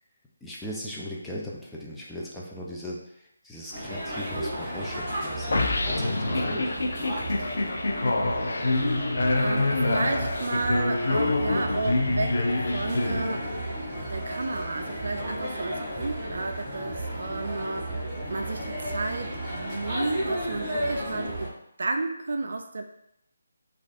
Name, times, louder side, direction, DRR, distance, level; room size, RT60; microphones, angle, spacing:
voice 1, 0.4-6.8, equal, 5° left, -5 dB, 0.4 m, -38 dB
sound 1, 3.7-21.5, right 1 dB, 20° right, 1.0 m, -33 dB
sound 2, 5.5-13.8, left 2 dB, 65° left, 0.4 m, -26 dB
voice 2, 9.3-13.5 14.1-17.9 18.3-22.8, right 3 dB, 65° right, 5 dB, 0.3 m, -32 dB
3.2 x 2.4 x 2.4 m, 0.76 s
figure-of-eight pair, 155°, 0 cm